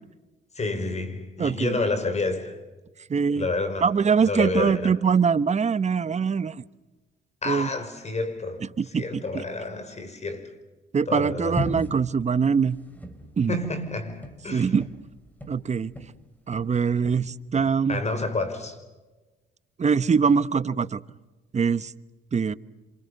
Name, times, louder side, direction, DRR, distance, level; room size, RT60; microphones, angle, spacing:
voice 1, 0.6-2.6 3.3-3.9 4.2-5.0 7.4-10.5 11.1-11.6 13.5-14.7 17.9-18.8, left 3 dB, 35° left, 5.2 m, -29 dB
voice 2, 1.4-1.8 3.1-3.5 3.8-6.6 7.5-7.7 8.8-9.4 10.9-12.8 13.4-13.6 14.5-14.9 15.5-15.9 16.5-18.0 19.8-21.0 21.5-21.9 22.3-22.5, right 6 dB, 35° right, 1.0 m, -23 dB
sound 1, 11.6-16.2 16.5-17.8, equal, 10° left, 4.4 m, -37 dB
29.0 x 27.0 x 6.7 m
cardioid pair, 90°, 20 cm